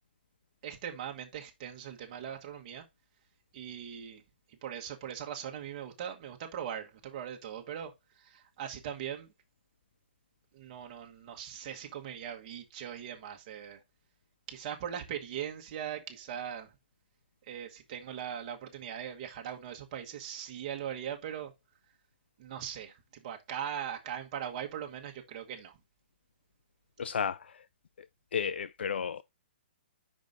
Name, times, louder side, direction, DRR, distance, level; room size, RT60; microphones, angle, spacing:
voice 1, 0.6-2.8 3.5-4.2 4.5-9.3 10.5-13.8 14.5-16.7 17.4-21.5 22.4-25.8, right 9 dB, 35° right, 1.3 m, -40 dB
voice 2, 27.0-27.5 28.3-29.2, left 7 dB, 85° left, 0.3 m, -32 dB
5.5 x 5.1 x 3.8 m
hypercardioid pair, 155°, 6 cm